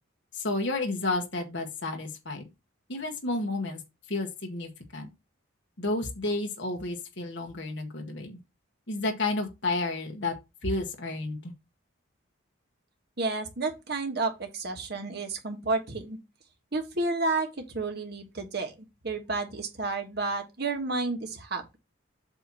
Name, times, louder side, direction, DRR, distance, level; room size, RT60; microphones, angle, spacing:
voice 1, 0.3-2.5 2.9-3.8 4.1-5.1 5.8-8.4 8.9-10.3 10.6-11.5, left 2 dB, 60° left, 1.4 m, -31 dB
voice 2, 13.2-16.2 16.7-21.8, right 3 dB, 50° right, 1.3 m, -31 dB
7.9 x 2.9 x 6.1 m
head